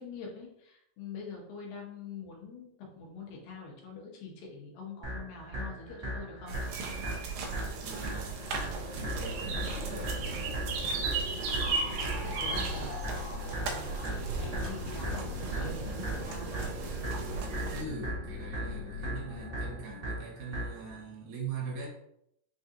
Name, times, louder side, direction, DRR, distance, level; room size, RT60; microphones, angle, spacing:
voice 1, 0.0-6.6 11.7-13.9 14.3-16.6, left 4 dB, 85° left, -1 dB, 2.7 m, -45 dB
sound 1, 5.0-21.0, right 1 dB, 45° right, 1.1 m, -39 dB
sound 2, 6.5-17.8, right 4 dB, 85° right, 1.6 m, -36 dB
voice 2, 7.8-10.2 17.5-21.9, right 4 dB, 70° right, -3 dB, 2.4 m, -42 dB
sound 3, 8.3-19.8, left 5 dB, 70° left, 2.1 m, -42 dB
5.9 x 2.4 x 2.7 m, 0.75 s
omnidirectional pair, 4.0 m